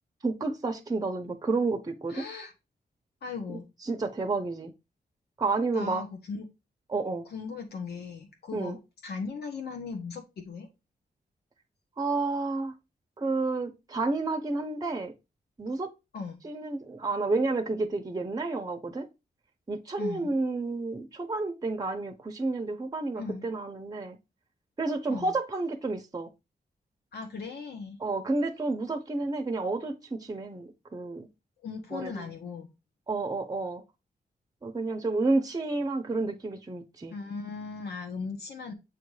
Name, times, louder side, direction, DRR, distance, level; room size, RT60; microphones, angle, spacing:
voice 1, 0.2-2.3 3.5-3.6 3.9-4.7 5.4-6.0 6.9-7.2 8.5-8.8 12.0-12.7 13.2-15.1 15.6-15.9 16.4-19.1 19.7-24.2 24.8-26.3 28.0-31.3 31.9-32.3 33.1-33.8 34.6-37.1, right 3 dB, 25° right, 0.8 m, -30 dB
voice 2, 2.1-2.5 3.2-3.6 5.7-6.5 7.3-10.7 16.1-16.4 20.0-20.3 23.2-23.4 25.1-25.3 27.1-28.0 31.6-32.7 37.1-38.7, left 4 dB, 80° left, 1.1 m, -38 dB
7.7 x 2.6 x 4.8 m
wide cardioid pair, 100°, 16 cm